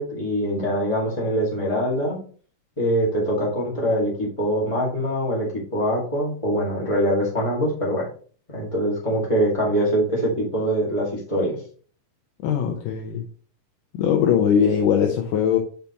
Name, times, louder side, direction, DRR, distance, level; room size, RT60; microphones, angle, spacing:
voice 1, 0.0-2.2 2.8-8.1 8.5-11.6, equal, 15° left, -5 dB, 1.0 m, -23 dB
voice 2, 12.4-13.3 13.9-15.6, left 8 dB, 80° left, 2 dB, 2.3 m, -20 dB
7.1 x 5.6 x 3.0 m, 0.43 s
omnidirectional pair, 3.9 m